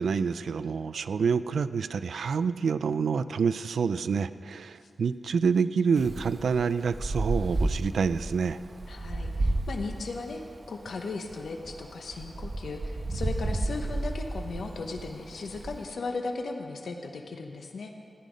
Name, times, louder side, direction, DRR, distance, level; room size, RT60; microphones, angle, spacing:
voice 1, 0.0-8.6, right 6 dB, 90° right, 14 dB, 0.3 m, -27 dB
Wind, 6.0-15.8, right 2 dB, 50° right, 1.0 m, -33 dB
voice 2, 8.9-10.4 10.7-17.9, left 3 dB, 85° left, 3 dB, 0.9 m, -37 dB
14.5 x 9.9 x 5.1 m, 2.6 s
wide cardioid pair, 80°, 0 cm